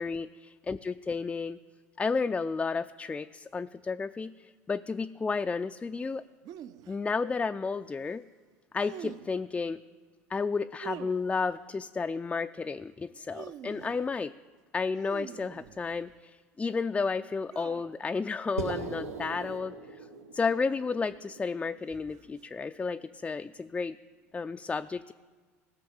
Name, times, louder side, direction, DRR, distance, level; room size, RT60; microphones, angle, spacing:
voice 1, 0.0-1.6 2.0-6.2 6.9-8.2 8.7-9.8 10.3-14.3 14.7-20.0 20.3-24.0 24.3-25.1, left 4 dB, 15° left, 10 dB, 0.3 m, -32 dB
sound 1, 6.4-7.0 8.8-9.5 10.8-11.6 13.1-14.1 15.0-16.1 17.5-18.1 18.8-19.1 20.4-20.9 22.1-22.4, right 10 dB, 55° right, 0.6 m, -46 dB
sound 2, 18.6-23.0, right 3 dB, 90° right, 1.0 m, -41 dB
16.0 x 5.6 x 7.2 m, 1.5 s
hypercardioid pair, 75°, 8 cm